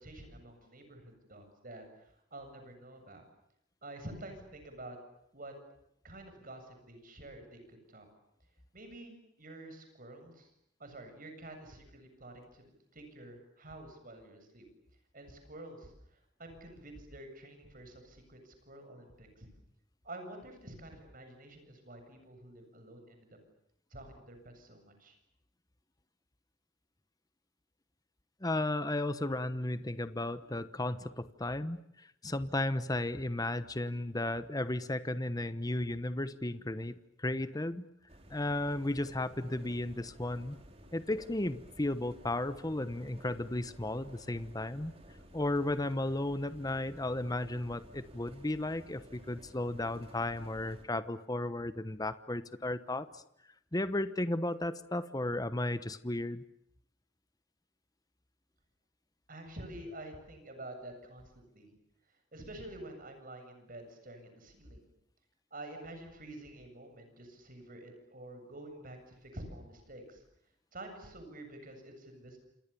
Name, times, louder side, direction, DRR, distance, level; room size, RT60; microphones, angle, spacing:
voice 1, 0.0-3.2 3.8-5.0 5.3-5.5 6.0-8.1 8.7-10.5 10.8-12.6 12.9-14.7 15.1-19.5 20.0-23.4 23.9-25.2 59.3-61.7 62.3-64.9 65.5-70.2 70.7-72.4, right 1 dB, 50° right, 6 dB, 7.7 m, -49 dB
voice 2, 28.4-37.8 38.3-40.6 40.9-44.9 45.3-53.2 53.7-56.4, left 1 dB, 20° left, 12 dB, 1.1 m, -34 dB
sound 1, 38.1-50.8, equal, 35° right, 4.8 m, -55 dB
28.5 x 28.0 x 7.1 m, 0.75 s
head